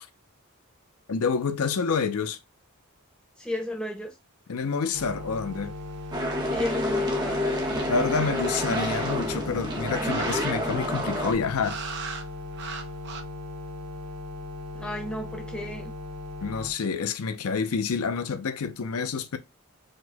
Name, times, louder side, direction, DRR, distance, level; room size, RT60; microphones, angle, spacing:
voice 1, 1.1-2.4 4.5-5.7 7.9-11.8 16.4-19.4, left 5 dB, 80° left, 0.5 m, -28 dB
voice 2, 3.4-4.1 6.5-7.4 14.7-15.9, left 1 dB, 5° left, 0.5 m, -33 dB
sound 1, 4.9-16.7, left 2 dB, 85° right, 1.3 m, -38 dB
sound 2, 5.3-10.9 11.6-12.3 12.5-13.2, right 5 dB, 50° right, 0.6 m, -42 dB
sound 3, 6.1-11.3, left 1 dB, 20° right, 0.8 m, -28 dB
4.8 x 2.1 x 3.9 m
head